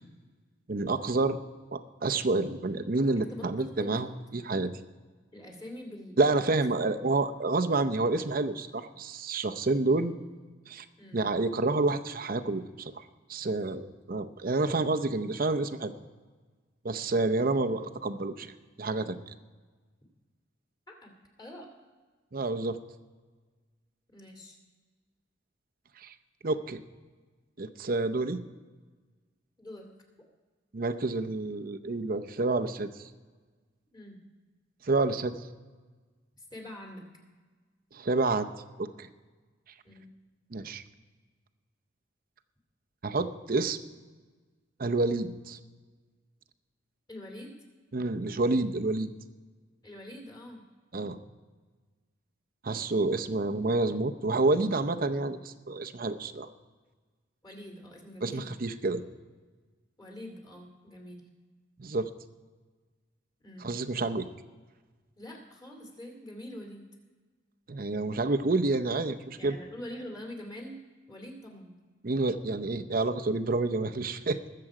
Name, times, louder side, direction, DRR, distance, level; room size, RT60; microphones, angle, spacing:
voice 1, 0.7-1.4 1.7-4.7 6.2-10.1 10.7-10.9 11.1-13.0 13.3-15.9 16.8-18.5 18.8-19.3 22.3-22.8 26.0-26.1 26.4-26.8 27.6-28.4 30.7-33.1 34.8-35.3 37.9-38.5 38.8-39.1 40.5-40.8 43.0-43.8 44.8-45.6 47.9-49.1 50.9-51.2 52.6-56.5 58.2-59.0 61.8-62.1 63.6-64.3 67.7-69.6 72.0-74.4, right 3 dB, 45° right, 8 dB, 0.7 m, -29 dB
voice 2, 3.2-4.0 5.3-6.2 11.0-11.3 17.4-17.6 20.9-21.1 21.4-21.7 24.1-24.6 29.6-29.9 30.2-30.3 33.9-34.2 36.5-37.0 39.8-40.1 47.1-47.5 49.8-50.6 57.4-58.5 60.0-61.2 63.4-63.8 65.2-66.9 69.4-70.8 71.1-71.8, left 1 dB, 20° left, 2 dB, 2.4 m, -44 dB
20.0 x 7.7 x 4.8 m, 1.4 s
head